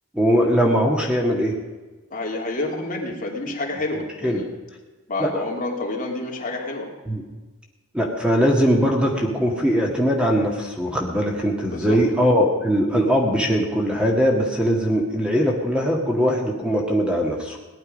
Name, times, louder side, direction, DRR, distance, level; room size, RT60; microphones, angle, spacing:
voice 1, 0.1-1.5 3.5-3.6 3.9-4.4 5.2-5.4 7.1-7.2 7.9-17.6, equal, 5° right, 0 dB, 1.9 m, -21 dB
voice 2, 2.1-4.5 5.1-6.9 11.7-12.0, left 2 dB, 40° left, -1 dB, 2.7 m, -28 dB
18.5 x 11.0 x 5.3 m, 1.2 s
head